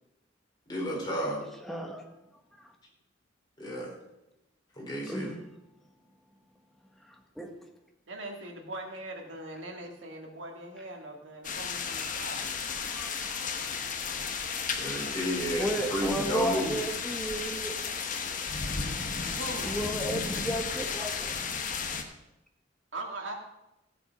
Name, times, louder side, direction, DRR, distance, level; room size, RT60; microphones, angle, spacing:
voice 1, 0.7-1.4 3.6-3.9 4.7-5.4 12.3-12.4 14.8-16.8, equal, 25° left, -3 dB, 3.7 m, -32 dB
voice 2, 1.6-2.0 2.6-2.7 5.1-5.4 7.4-7.5 12.9-13.5 15.6-17.8 19.6-21.3, right 1 dB, ahead, 2 dB, 1.4 m, -33 dB
voice 3, 8.1-12.5 19.4-19.7 22.9-23.3, right 1 dB, 85° right, 2 dB, 2.2 m, -41 dB
sound 1, 11.4-22.0, left 5 dB, 45° left, 1.1 m, -34 dB
15.5 x 7.6 x 5.2 m, 0.94 s
head